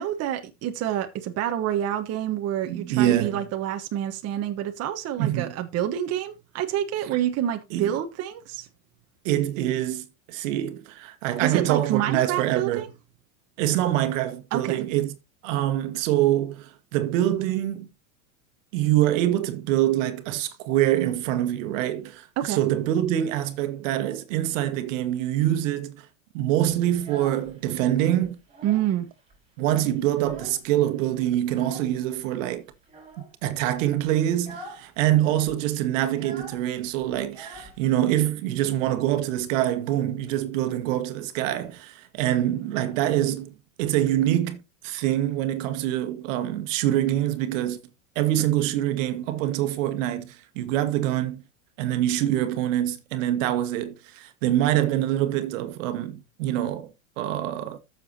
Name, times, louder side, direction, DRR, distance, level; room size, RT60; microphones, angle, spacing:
voice 1, 0.0-8.7 11.4-12.9 14.5-14.8 22.4-22.6 28.6-29.1, right 11 dB, 35° right, 1.2 m, -28 dB
voice 2, 2.7-3.5 5.2-5.5 7.7-7.9 9.2-12.8 13.6-15.1 15.4-17.9 18.7-26.0 26.3-28.4 29.6-32.6 33.2-47.8 48.1-51.4 51.8-56.9 57.2-57.8, right 13 dB, 65° right, 1.6 m, -25 dB
Child speech kid speaking, 26.8-27.9 28.2-29.0 29.3-29.4 29.7-30.8 31.5-32.0 32.8-33.3 33.7-33.9 34.3-34.9 35.1-35.2 35.5-38.3, right 2 dB, 15° right, 4.9 m, -44 dB
13.5 x 7.0 x 2.8 m
supercardioid pair, 125°, 41 cm